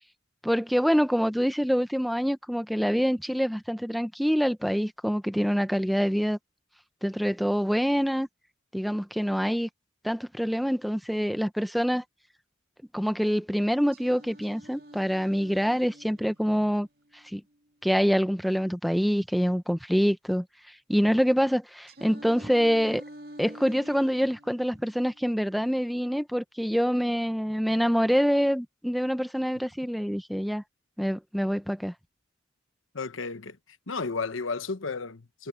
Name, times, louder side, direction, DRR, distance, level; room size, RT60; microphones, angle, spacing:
voice 1, 0.4-6.4 7.0-8.3 8.7-9.7 10.0-12.0 12.9-16.9 17.3-17.4 17.8-20.4 20.9-23.0 23.4-30.6 31.0-31.9, equal, ahead, 0.7 m, -25 dB
Singing, 13.9-17.9 21.9-25.9, right 1 dB, 50° right, 2.5 m, -48 dB
voice 2, 32.9-33.6 33.9-35.5, left 4 dB, 80° left, 1.1 m, -33 dB
head